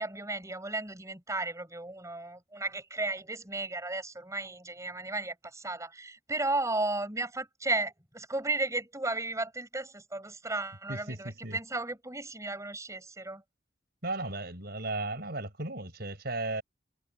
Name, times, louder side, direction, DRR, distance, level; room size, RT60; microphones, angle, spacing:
voice 1, 0.0-13.4, right 2 dB, 15° right, 5.4 m, -34 dB
voice 2, 10.9-11.6 14.0-16.6, right 2 dB, 55° right, 7.5 m, -35 dB
head